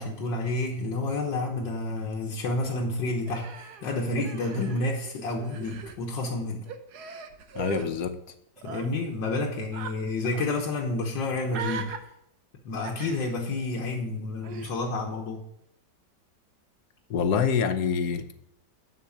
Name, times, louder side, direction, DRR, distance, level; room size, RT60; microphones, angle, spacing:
voice 1, 0.0-6.6 8.6-11.9 12.7-15.4, left 2 dB, 85° left, -1 dB, 1.9 m, -30 dB
Human voice, 3.3-5.1 5.4-6.0 6.7-7.9 8.6-8.9 9.7-9.9 10.2-10.5 11.5-12.0 12.8-13.4 14.4-14.7, right 6 dB, 65° right, 1.4 m, -39 dB
voice 2, 7.5-8.2 17.1-18.4, left 6 dB, 70° left, 9 dB, 1.2 m, -26 dB
11.5 x 4.2 x 7.1 m, 0.78 s
omnidirectional pair, 1.9 m